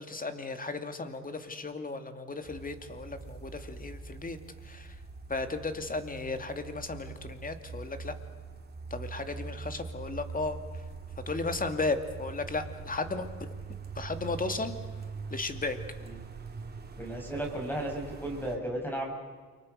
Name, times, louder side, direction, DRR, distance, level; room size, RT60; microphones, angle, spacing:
voice 1, 0.0-4.4 4.6-5.0 5.3-8.2 8.9-10.8 11.3-13.5 13.9-14.8 15.3-15.8, left 3 dB, 30° left, 8 dB, 2.6 m, -35 dB
sound 1, 2.4-18.6, right 4 dB, 30° right, 3.5 m, -43 dB
voice 2, 17.0-19.1, right 1 dB, 5° left, 1 dB, 5.5 m, -34 dB
29.5 x 24.0 x 6.6 m, 1.5 s
cardioid pair, 90°, 30 cm